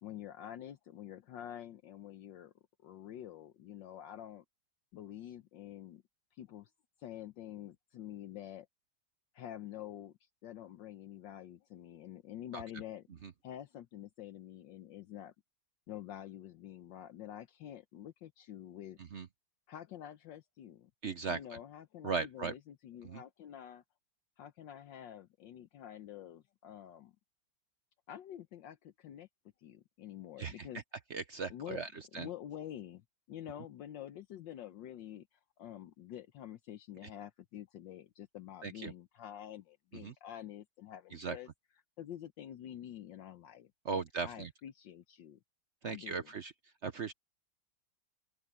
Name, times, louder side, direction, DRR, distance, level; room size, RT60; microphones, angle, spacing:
voice 1, 0.0-2.5 2.8-4.4 4.9-6.0 6.3-6.7 7.0-8.7 9.3-13.1 13.4-15.3 15.9-19.0 19.7-20.9 21.3-23.8 24.4-27.1 28.1-29.3 29.6-30.8 31.5-31.8 32.1-41.5 42.0-45.4 45.8-46.3, left 11 dB, 70° left, 1.5 m, -48 dB
voice 2, 21.0-21.4 22.0-22.5 23.0-23.2 30.4-30.7 31.1-32.3 38.6-38.9 40.0-40.1 41.1-41.4 43.8-44.5 45.8-46.5 46.8-47.1, right 5 dB, 55° right, 0.8 m, -38 dB
open air
omnidirectional pair, 2.1 m